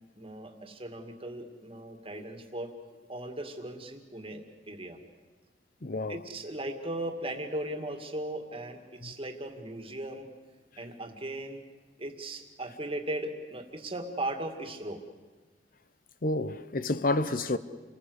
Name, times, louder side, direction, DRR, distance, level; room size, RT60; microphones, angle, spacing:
voice 1, 0.2-2.7 3.1-5.0 6.1-10.3 10.8-11.6 12.0-15.0, right 1 dB, 30° right, 2.3 m, -37 dB
voice 2, 5.8-6.2 16.2-17.6, left 2 dB, 50° left, 0.8 m, -29 dB
28.5 x 20.0 x 8.1 m
head